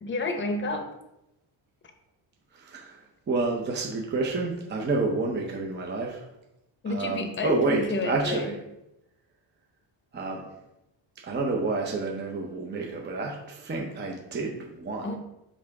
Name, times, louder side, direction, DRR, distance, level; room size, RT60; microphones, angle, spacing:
voice 1, 0.0-0.9 6.8-8.5 15.0-15.2, left 3 dB, 25° left, 5 dB, 0.8 m, -30 dB
voice 2, 2.5-6.3 6.9-8.6 10.1-10.4 11.2-15.2, right 3 dB, 20° right, 0 dB, 0.6 m, -29 dB
5.4 x 3.7 x 4.7 m, 0.89 s
cardioid pair, 140°, 48 cm